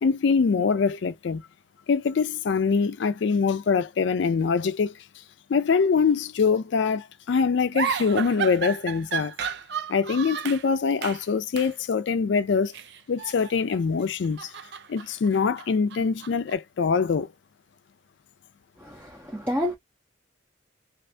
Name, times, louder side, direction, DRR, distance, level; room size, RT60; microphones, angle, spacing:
voice 1, 0.0-1.4 1.9-4.9 5.5-9.3 9.9-12.7 13.1-14.5 14.9-17.3, left 5 dB, 65° left, 0.4 m, -24 dB
sound 1, 7.7-10.7 11.0-11.3 11.6-11.8 12.7-13.8 14.2-16.5, right 7 dB, 55° right, 0.4 m, -33 dB
voice 2, 18.8-19.8, equal, 10° right, 0.5 m, -29 dB
2.6 x 2.5 x 3.2 m
head